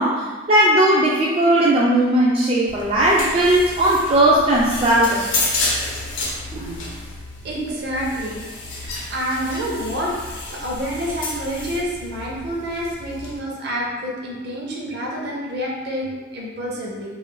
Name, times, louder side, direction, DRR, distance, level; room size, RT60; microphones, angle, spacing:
voice 1, 0.0-5.5 6.5-6.9, right 1 dB, 30° right, -6 dB, 0.3 m, -18 dB
sound 1, 2.7-13.4, left 2 dB, 90° left, 0.6 m, -30 dB
voice 2, 7.4-8.5 8.8-17.2, equal, 55° right, -3 dB, 0.7 m, -28 dB
2.5 x 2.1 x 3.8 m, 1.3 s
head